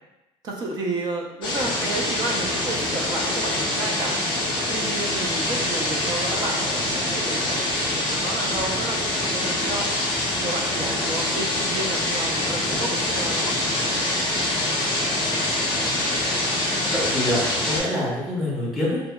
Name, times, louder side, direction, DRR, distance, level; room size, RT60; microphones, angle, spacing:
voice 1, 0.4-4.2 4.7-9.9 10.4-13.6 14.6-14.8, right 2 dB, 35° right, 0 dB, 0.4 m, -31 dB
sound 1, 1.4-17.8, left 1 dB, 40° left, 0.7 m, -25 dB
voice 2, 16.8-19.0, left 1 dB, ahead, -8 dB, 0.7 m, -26 dB
2.7 x 2.1 x 2.2 m, 0.97 s
cardioid pair, 160°, 12 cm